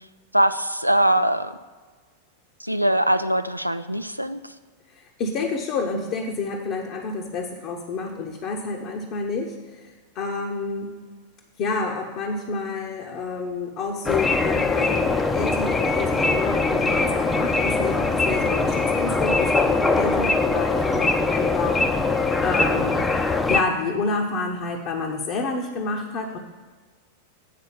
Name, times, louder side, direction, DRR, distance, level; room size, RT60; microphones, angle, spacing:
voice 1, 0.3-1.5 2.6-4.5, right 1 dB, 90° right, 12 dB, 0.4 m, -22 dB
voice 2, 4.9-10.9 11.6-23.0 23.5-26.4, left 4 dB, 40° left, 0 dB, 0.9 m, -29 dB
sound 1, 14.0-23.6, left 3 dB, 10° left, 0.6 m, -22 dB
8.5 x 4.4 x 6.8 m, 1.4 s
figure-of-eight pair, 90°, 0 cm